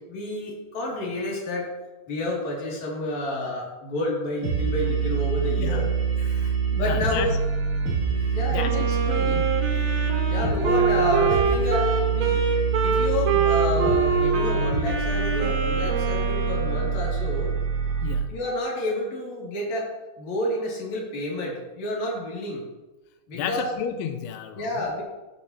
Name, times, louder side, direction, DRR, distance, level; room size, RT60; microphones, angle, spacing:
voice 1, 0.1-1.7 2.1-5.9 6.7-7.3 8.3-9.4 10.3-12.4 12.8-17.5 18.3-19.9 20.2-22.6 23.3-23.7 24.5-25.0, left 1 dB, 45° left, -4 dB, 3.2 m, -29 dB
sound 1, 4.4-18.1, right 6 dB, 50° right, 2.9 m, -25 dB
voice 2, 5.6-7.4 8.5-8.7 9.1-9.5 18.0-18.4 23.3-24.8, left 8 dB, 90° left, 7 dB, 2.3 m, -33 dB
Wind instrument woodwind instrument, 8.6-17.0, right 4 dB, 90° right, 1.5 m, -25 dB
15.5 x 7.2 x 2.8 m, 1.1 s
omnidirectional pair, 5.2 m